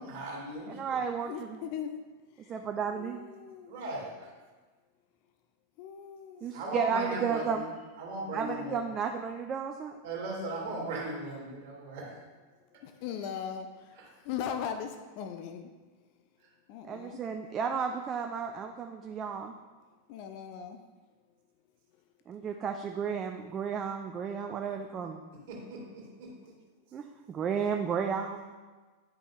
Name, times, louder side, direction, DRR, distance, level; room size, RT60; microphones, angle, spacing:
voice 1, 0.0-1.0 3.7-4.3 6.5-7.6 8.0-8.8 10.0-12.1 25.5-26.3, right 1 dB, 50° right, -2 dB, 1.9 m, -37 dB
voice 2, 0.7-1.6 2.5-3.2 6.4-7.6 8.3-10.0 16.9-19.5 22.3-25.2 26.9-28.5, right 6 dB, 25° right, 4 dB, 0.4 m, -33 dB
voice 3, 1.2-2.0 2.3-3.9 5.8-6.5 12.7-15.7 16.7-17.2 20.1-20.8, left 8 dB, 45° left, 7 dB, 0.4 m, -39 dB
10.5 x 5.1 x 2.4 m, 1.3 s
figure-of-eight pair, 90°, 0 cm